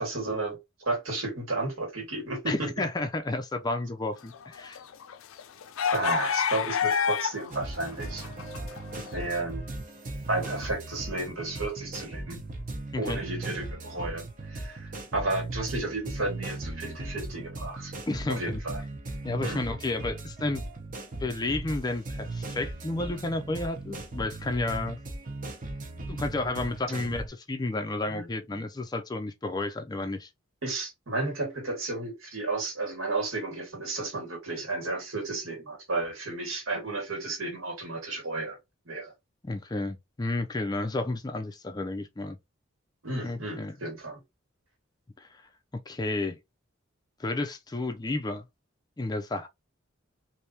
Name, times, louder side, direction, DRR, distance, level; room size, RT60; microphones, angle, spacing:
voice 1, 0.0-2.7 5.9-8.3 9.0-9.6 10.3-12.4 13.0-17.9 18.3-18.8 19.4-19.7 28.1-28.3 30.6-38.6 38.9-39.1 43.0-44.2, right 2 dB, 75° right, 1.8 m, -33 dB
voice 2, 2.5-4.8 12.9-13.2 18.1-18.6 19.2-20.6 21.2-25.0 26.1-30.3 39.4-42.4 43.2-43.8 45.2-45.4 45.9-46.4 47.2-48.4 49.0-49.5, left 2 dB, 20° left, 0.4 m, -31 dB
sound 1, 4.3-7.5 7.9-9.2, left 7 dB, 80° left, 0.4 m, -29 dB
sound 2, 7.5-27.3, right 2 dB, 40° right, 0.9 m, -38 dB
3.3 x 2.7 x 2.7 m
head